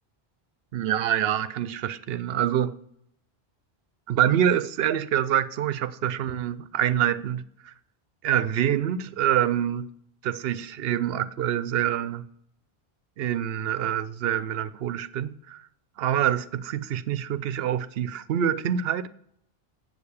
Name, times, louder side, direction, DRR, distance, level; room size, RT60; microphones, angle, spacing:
voice 1, 0.7-2.8 4.1-7.7 8.2-9.9 10.2-12.2 13.2-15.6 16.0-19.1, right 10 dB, 70° right, 0.8 m, -26 dB
8.5 x 6.7 x 7.0 m
omnidirectional pair, 1.1 m